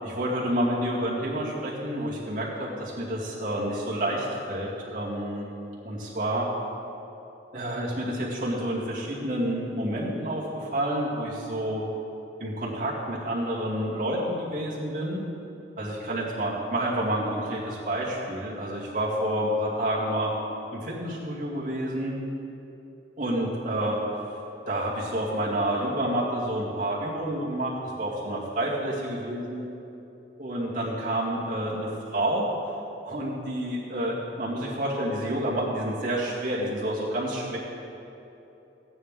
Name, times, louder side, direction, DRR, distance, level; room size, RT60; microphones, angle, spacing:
voice 1, 0.0-5.5 5.8-6.5 7.5-11.8 12.4-15.2 15.8-20.3 20.7-22.1 23.2-24.0 24.7-29.6 30.4-32.5 33.0-37.6, right 1 dB, 50° right, -6 dB, 2.3 m, -29 dB
15.0 x 9.7 x 3.7 m, 3.0 s
head